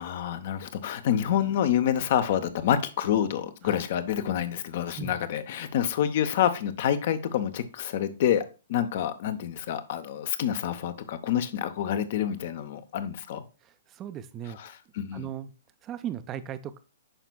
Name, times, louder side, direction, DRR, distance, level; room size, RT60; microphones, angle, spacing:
voice 1, 0.0-8.4 8.7-13.4 14.6-15.3, left 10 dB, 45° left, 0.7 m, -27 dB
voice 2, 13.6-14.6 15.1-15.5 15.8-16.8, right 10 dB, 20° right, 0.5 m, -37 dB
8.9 x 5.8 x 2.2 m
figure-of-eight pair, 120°, 0 cm